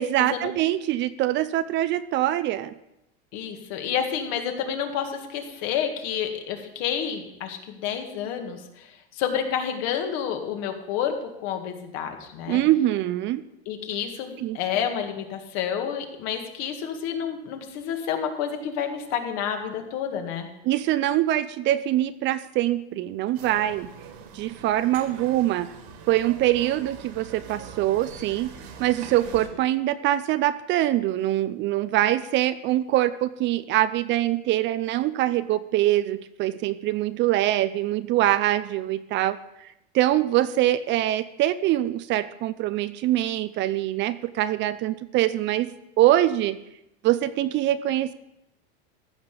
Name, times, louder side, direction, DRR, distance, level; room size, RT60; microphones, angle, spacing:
voice 1, 0.0-2.7 12.5-13.4 14.4-14.6 20.6-23.9 24.3-25.7 26.1-28.5 28.8-39.7 39.9-46.6 47.0-48.1, right 14 dB, 35° right, 14 dB, 0.5 m, -24 dB
voice 2, 3.3-12.6 13.7-20.5, left 8 dB, 55° left, 5 dB, 2.0 m, -29 dB
sound 1, 23.3-29.5, right 6 dB, 55° right, 2.0 m, -43 dB
14.5 x 5.8 x 6.9 m, 0.87 s
supercardioid pair, 130°, 31 cm